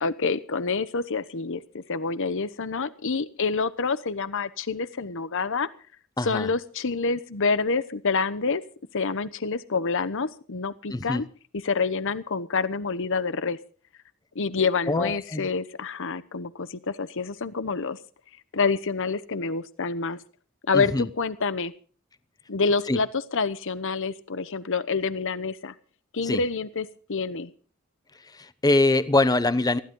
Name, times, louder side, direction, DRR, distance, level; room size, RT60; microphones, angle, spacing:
voice 1, 0.0-5.7 6.2-8.6 8.9-11.2 11.6-13.6 14.3-18.0 18.5-20.2 20.7-21.7 22.5-25.7 26.1-27.5, left 4 dB, 65° left, 15 dB, 1.0 m, -27 dB
voice 2, 6.2-6.5 10.9-11.2 14.9-15.5 20.7-21.1 22.9-23.0 26.2-26.4 28.4-29.8, left 2 dB, 20° left, 14 dB, 0.8 m, -23 dB
20.0 x 15.5 x 3.8 m, 0.40 s
head